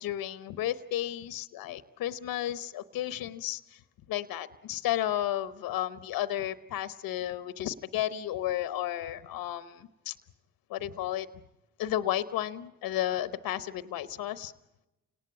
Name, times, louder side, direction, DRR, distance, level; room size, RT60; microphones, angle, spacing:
voice 1, 0.0-3.8 4.1-10.2 10.7-11.3 11.8-14.5, left 12 dB, 90° left, 13 dB, 0.9 m, -33 dB
29.5 x 19.0 x 9.8 m, 0.98 s
supercardioid pair, 55°, 34 cm